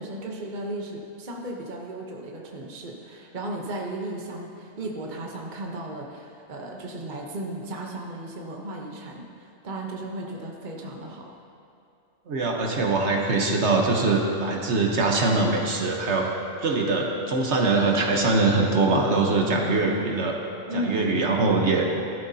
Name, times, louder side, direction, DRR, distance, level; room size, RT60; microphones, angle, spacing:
voice 1, 0.0-11.3 20.7-21.3, right 1 dB, 40° right, -1 dB, 1.1 m, -35 dB
voice 2, 12.3-16.3 16.6-20.3 20.7-21.9, right 3 dB, 65° right, 0 dB, 1.4 m, -22 dB
16.0 x 12.0 x 2.8 m, 2.6 s
omnidirectional pair, 1.3 m